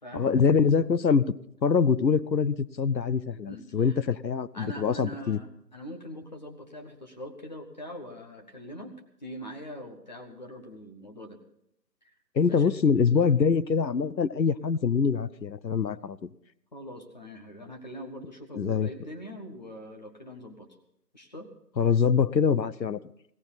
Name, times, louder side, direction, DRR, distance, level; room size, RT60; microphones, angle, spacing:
voice 1, 0.1-1.2 1.6-5.4 12.3-16.3 18.5-18.9 21.8-23.0, left 6 dB, 90° left, 16 dB, 0.9 m, -24 dB
voice 2, 3.5-4.0 4.5-8.9 9.2-11.4 12.5-12.7 16.7-20.7 21.1-21.5, equal, 25° left, 3 dB, 1.4 m, -42 dB
17.0 x 15.0 x 4.1 m, 0.73 s
figure-of-eight pair, 165°, 50 cm